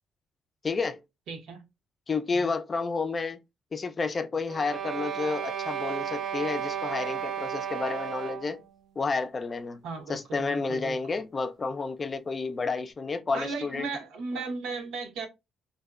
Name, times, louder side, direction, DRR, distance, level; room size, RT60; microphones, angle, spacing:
voice 1, 0.6-1.0 2.1-3.4 3.7-8.6 9.0-9.8 10.1-13.9, left 4 dB, 35° left, 0.3 m, -30 dB
voice 2, 1.3-1.6 2.3-2.5 9.8-11.2 13.3-15.3, right 4 dB, 85° right, 0.8 m, -36 dB
sound 1, 4.5-8.6, right 8 dB, 70° right, 0.4 m, -33 dB
2.5 x 2.0 x 2.3 m
cardioid pair, 90°, 0 cm